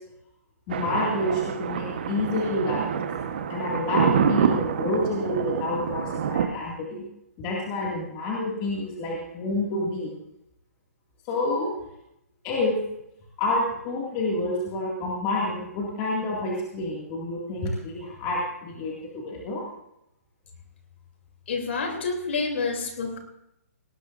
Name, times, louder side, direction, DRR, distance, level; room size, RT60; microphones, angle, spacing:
voice 1, 0.7-3.1 3.5-7.0 7.4-10.1 11.3-11.7 12.4-12.7 13.4-19.6, left 2 dB, 20° left, -3 dB, 2.1 m, -28 dB
Thunder, 0.7-6.5, right 7 dB, 40° right, 1.1 m, -27 dB
voice 2, 21.5-23.2, left 4 dB, 45° left, 3 dB, 3.1 m, -28 dB
18.5 x 18.0 x 2.6 m, 0.79 s
hypercardioid pair, 175°, 8 cm